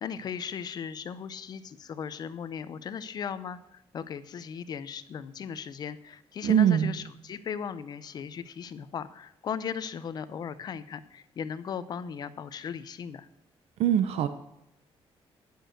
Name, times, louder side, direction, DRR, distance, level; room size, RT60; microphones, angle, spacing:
voice 1, 0.0-13.3, left 7 dB, 40° left, 13 dB, 0.7 m, -37 dB
voice 2, 6.4-7.0 13.8-14.3, right 9 dB, 75° right, 10 dB, 0.8 m, -22 dB
10.5 x 6.4 x 7.9 m, 0.82 s
cardioid pair, 180°, 11 cm